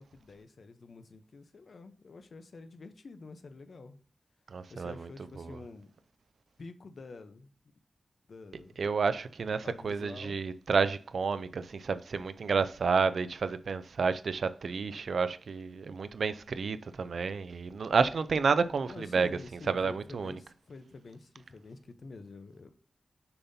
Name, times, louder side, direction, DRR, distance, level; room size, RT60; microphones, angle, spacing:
voice 1, 0.0-4.0 4.7-5.9 6.6-7.5 8.3-8.8 9.6-10.3 18.9-22.7, left 3 dB, 65° left, 0.7 m, -48 dB
voice 2, 4.5-5.1 5.4-5.6 8.8-20.4, right 5 dB, 80° right, 0.4 m, -30 dB
6.8 x 5.6 x 2.7 m
wide cardioid pair, 125°, 0 cm